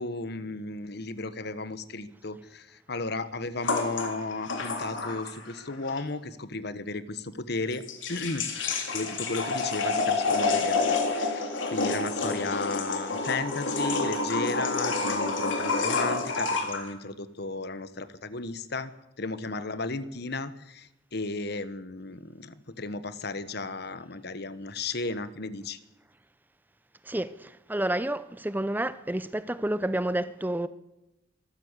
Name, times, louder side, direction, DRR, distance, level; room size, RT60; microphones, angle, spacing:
voice 1, 0.0-8.4 8.9-18.9 19.2-25.8, left 3 dB, 60° left, 1.3 m, -34 dB
sound 1, 3.6-5.6 5.9-6.0 7.7-16.9, left 3 dB, 85° left, 3.5 m, -28 dB
voice 2, 27.1-30.7, right 1 dB, 10° right, 0.6 m, -30 dB
24.0 x 14.0 x 8.2 m
head